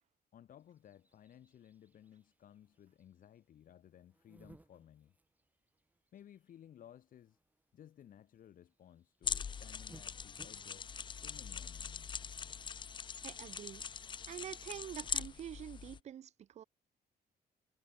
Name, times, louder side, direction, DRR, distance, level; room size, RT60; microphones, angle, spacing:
voice 1, 0.3-5.1 6.1-7.4 7.7-12.3, left 10 dB, 55° left, 2.8 m, -58 dB
sound 1, 0.6-16.0, right 2 dB, 10° right, 3.4 m, -67 dB
sound 2, 9.2-16.0, left 6 dB, 30° left, 0.6 m, -42 dB
voice 2, 13.2-13.8 14.3-16.6, right 10 dB, 40° right, 0.5 m, -46 dB
cardioid pair, 150°, 17 cm